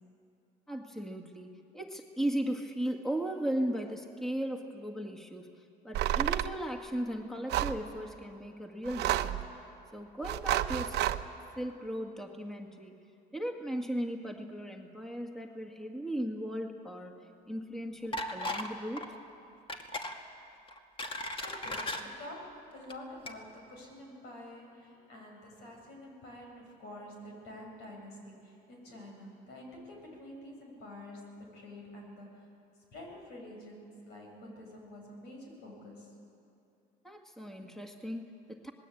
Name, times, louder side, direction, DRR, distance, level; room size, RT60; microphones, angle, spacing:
voice 1, 0.7-5.5 5.8-9.5 9.9-11.0 11.6-12.9 13.3-19.1 37.0-38.7, right 1 dB, ahead, 1 dB, 1.9 m, -37 dB
sound 1, 5.9-6.5 7.5-7.8 8.9-9.4 10.2-11.2, right 12 dB, 80° right, 0.9 m, -30 dB
sound 2, 18.1-18.7 19.0-19.2 19.7-20.2 20.7-22.0 22.8-22.9 23.3-23.4, left 1 dB, 30° left, 2.3 m, -36 dB
voice 2, 21.4-32.4 32.9-36.2, left 1 dB, 85° left, 1 dB, 7.6 m, -48 dB
26.5 x 20.0 x 8.7 m, 2.6 s
cardioid pair, 110°, 17 cm